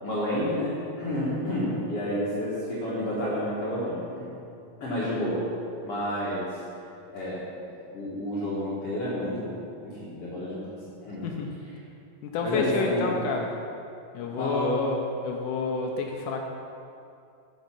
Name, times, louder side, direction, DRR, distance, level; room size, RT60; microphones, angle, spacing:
voice 1, 0.0-4.3 4.8-5.4 5.8-6.6 7.1-9.6 9.8-10.7 11.0-11.3 12.4-13.1 14.2-14.8, equal, 50° left, -8 dB, 2.2 m, -30 dB
voice 2, 11.2-11.6 12.2-13.5 14.1-16.4, left 4 dB, 75° left, 1 dB, 2.0 m, -29 dB
8.1 x 7.0 x 5.8 m, 2.6 s
omnidirectional pair, 4.1 m